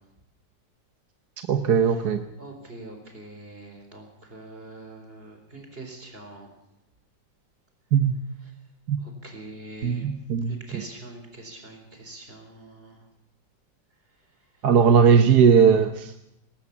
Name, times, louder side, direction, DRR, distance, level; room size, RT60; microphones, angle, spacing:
voice 1, 1.5-2.2 7.9-8.1 8.9-9.0 9.8-10.5 14.6-16.3, right 7 dB, 60° right, 7 dB, 1.5 m, -18 dB
voice 2, 2.4-6.5 8.4-8.5 9.0-10.1 10.5-13.0 14.6-14.7, right 2 dB, 30° right, 4 dB, 4.5 m, -43 dB
19.5 x 19.5 x 7.2 m, 0.85 s
omnidirectional pair, 2.0 m